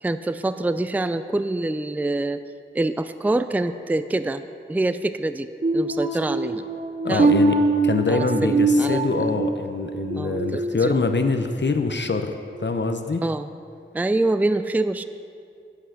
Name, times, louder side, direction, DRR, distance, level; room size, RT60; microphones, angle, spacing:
voice 1, 0.0-2.4 2.7-6.6 7.1-7.4 8.1-9.3 10.1-11.0 13.2-13.5 13.9-15.0, right 2 dB, 10° right, 11 dB, 0.4 m, -25 dB
sound 1, 5.6-11.3 11.7-12.0 12.5-12.7, right 3 dB, 45° right, 1.2 m, -24 dB
voice 2, 7.0-7.6 7.8-12.3 12.6-13.2, left 3 dB, 60° left, 7 dB, 0.7 m, -24 dB
10.0 x 8.1 x 6.5 m, 2.3 s
wide cardioid pair, 40°, 21 cm